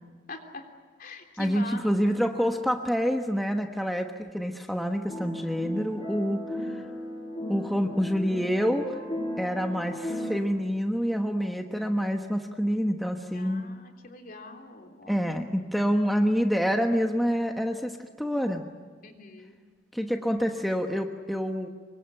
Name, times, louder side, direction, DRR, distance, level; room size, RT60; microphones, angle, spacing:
voice 1, 0.3-0.6 1.0-2.2 13.3-15.5 19.0-19.6, left 3 dB, 50° left, 4 dB, 3.4 m, -43 dB
voice 2, 1.4-6.8 7.5-9.0 9.4-13.6 15.1-18.6 19.9-21.7, equal, ahead, 3 dB, 1.2 m, -27 dB
sound 1, 5.1-10.4, equal, 30° left, 7.1 m, -36 dB
25.5 x 23.5 x 8.9 m, 1.5 s
head